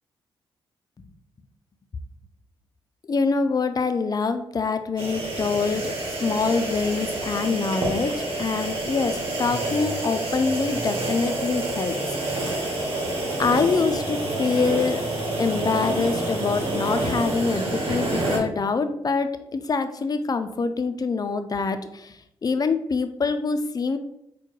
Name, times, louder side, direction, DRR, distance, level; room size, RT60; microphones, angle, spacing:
voice 1, 3.1-5.9 6.2-12.5 13.4-15.1 15.4-24.0, left 4 dB, 35° left, 9 dB, 0.4 m, -25 dB
sound 1, 5.0-18.4, right 2 dB, 55° right, 1.3 m, -28 dB
4.3 x 2.2 x 3.1 m, 0.80 s
supercardioid pair, 45°, 11 cm